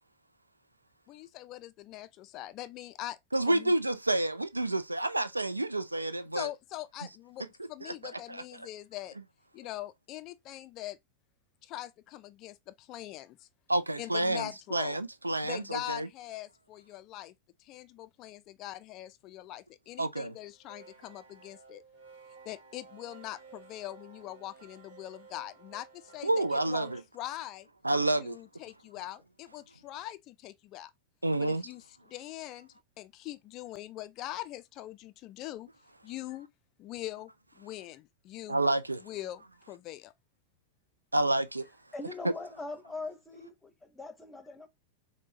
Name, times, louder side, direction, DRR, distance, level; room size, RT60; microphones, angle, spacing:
voice 1, 1.1-3.2 3.5-3.7 6.3-9.2 9.5-11.0 11.6-13.5 14.0-15.0 15.4-17.3 17.6-21.8 22.5-27.7 28.2-30.9 31.4-35.7 36.0-36.5 36.8-37.3 37.6-38.6 39.0-39.4 39.7-40.1, left 14 dB, 40° left, 0.3 m, -42 dB
voice 2, 3.3-6.5 7.8-8.4 13.7-16.1 20.0-20.3 26.2-27.0 27.8-28.4 31.2-31.7 38.5-39.0 41.1-41.7, right 2 dB, 85° right, 0.4 m, -29 dB
sound 1, 20.5-27.0, right 5 dB, 65° right, 1.1 m, -54 dB
voice 3, 41.9-44.7, left 3 dB, 10° left, 0.9 m, -41 dB
5.9 x 2.1 x 2.7 m
figure-of-eight pair, 90°, 0 cm